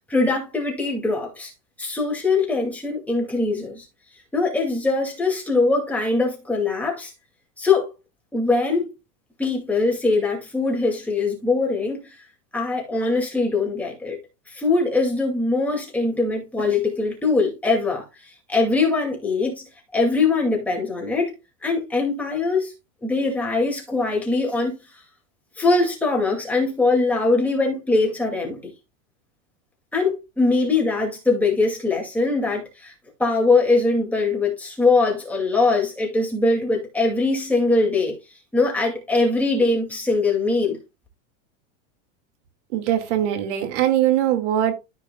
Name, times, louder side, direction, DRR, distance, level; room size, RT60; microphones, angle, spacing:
voice 1, 0.1-1.5 1.8-3.9 4.3-7.1 7.6-7.9 8.3-8.9 9.4-12.2 12.5-14.2 14.5-19.7 19.9-21.3 21.6-22.7 23.0-24.7 25.6-28.7 29.9-32.9 33.2-38.2 38.5-40.8, left 3 dB, 5° left, 2.5 m, -22 dB
voice 2, 42.7-44.7, right 11 dB, 65° right, 2.3 m, -21 dB
13.5 x 4.9 x 2.4 m
supercardioid pair, 160°, 38 cm